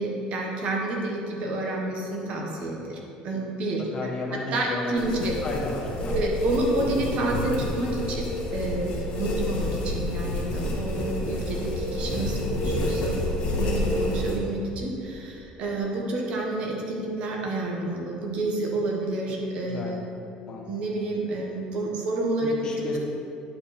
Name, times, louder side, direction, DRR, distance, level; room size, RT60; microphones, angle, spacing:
voice 1, 0.0-3.0 3.2-5.4 6.1-20.0 20.7-23.0, right 2 dB, 55° right, -1 dB, 1.5 m, -29 dB
voice 2, 3.9-6.2 19.6-19.9 20.5-20.6 20.9-21.0 22.4-23.0, left 2 dB, 30° left, -1 dB, 1.2 m, -34 dB
sound 1, 4.9-14.4, left 1 dB, 45° left, 1.7 m, -29 dB
10.5 x 4.9 x 4.3 m, 2.6 s
cardioid pair, 130°, 2 cm